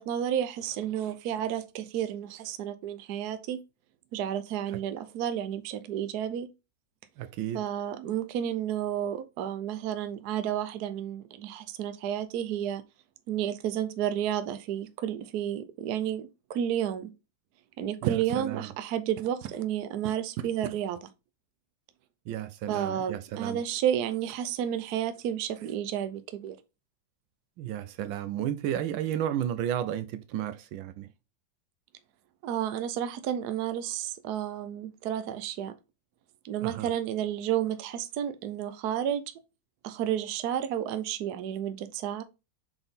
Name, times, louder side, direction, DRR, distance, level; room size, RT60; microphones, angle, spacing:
voice 1, 0.0-3.6 4.1-6.5 7.5-12.8 13.3-17.1 17.8-21.1 22.7-26.6 32.4-35.7 36.4-39.2 39.8-42.2, right 10 dB, 60° right, 1.1 m, -31 dB
voice 2, 7.2-7.6 18.0-18.7 22.3-23.6 27.6-31.1 36.6-36.9, right 10 dB, 80° right, 1.4 m, -33 dB
7.0 x 4.0 x 3.6 m
omnidirectional pair, 2.2 m